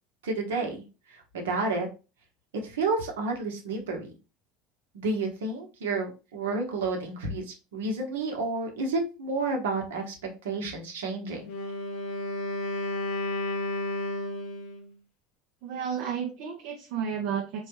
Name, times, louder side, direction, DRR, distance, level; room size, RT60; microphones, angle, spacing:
voice 1, 0.2-1.9 2.6-4.1 4.9-10.1 10.4-11.5, right 3 dB, 85° right, 2 dB, 1.0 m, -30 dB
Wind instrument woodwind instrument, 11.4-14.9, left 2 dB, 70° left, 0.7 m, -32 dB
voice 2, 15.6-17.7, right 7 dB, 65° right, 2 dB, 0.6 m, -32 dB
4.0 x 2.3 x 2.9 m, 0.32 s
hypercardioid pair, 90°, 0 cm